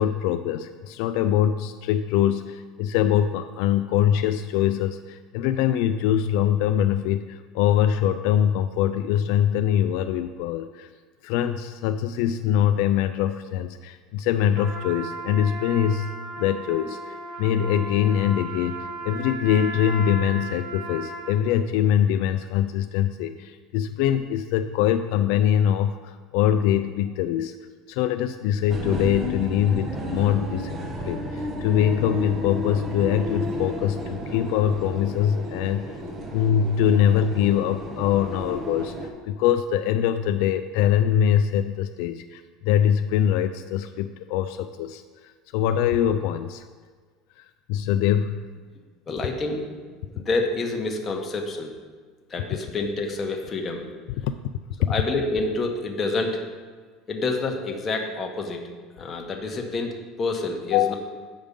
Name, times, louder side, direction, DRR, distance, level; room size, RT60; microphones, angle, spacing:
voice 1, 0.0-10.9 11.2-27.5 27.9-30.8 31.0-36.0 36.3-39.0 39.2-45.0 45.5-46.6 47.4-48.4 54.2-54.3 54.8-54.9 60.7-60.9, left 10 dB, 70° left, 8 dB, 0.3 m, -23 dB
Trumpet, 14.5-21.5, right 2 dB, 55° right, 1.5 m, -36 dB
sound 1, 28.7-39.1, equal, 25° right, 0.9 m, -32 dB
voice 2, 49.1-49.6 50.1-51.7 52.3-53.9 54.8-56.4 57.1-58.7 59.0-60.9, left 3 dB, 20° left, 1 dB, 1.0 m, -28 dB
8.4 x 5.2 x 5.3 m, 1.5 s
cardioid pair, 155°, 0 cm